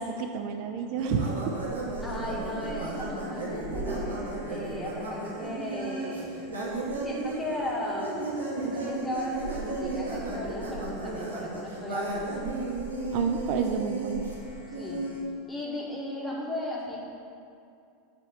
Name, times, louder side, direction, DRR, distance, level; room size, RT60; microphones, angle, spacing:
voice 1, 0.0-1.5 13.1-14.2, right 6 dB, 55° right, 5 dB, 0.6 m, -29 dB
sound 1, 1.0-15.2, right 2 dB, 90° right, 1.8 m, -34 dB
voice 2, 2.0-6.3 7.0-8.3 8.5-12.5 14.8-15.1 15.5-17.0, left 1 dB, 15° left, -5 dB, 2.0 m, -36 dB
7.3 x 5.2 x 7.1 m, 2.5 s
hypercardioid pair, 95°, 0 cm